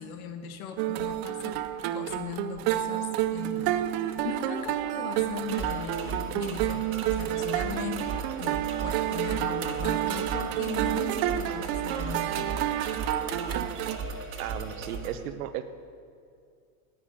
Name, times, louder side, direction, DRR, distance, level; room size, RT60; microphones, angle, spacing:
voice 1, 0.0-1.6 1.9-3.9 4.2-12.6 12.8-13.6 13.9-14.0, left 7 dB, 70° left, 8 dB, 1.6 m, -39 dB
sound 1, 0.8-14.0, right 13 dB, 45° right, 0.6 m, -30 dB
sound 2, 5.5-15.1, right 4 dB, 30° right, 1.6 m, -37 dB
voice 2, 14.1-15.6, right 11 dB, 75° right, 11 dB, 1.1 m, -36 dB
10.5 x 9.0 x 9.9 m, 2.4 s
supercardioid pair, 160°, 44 cm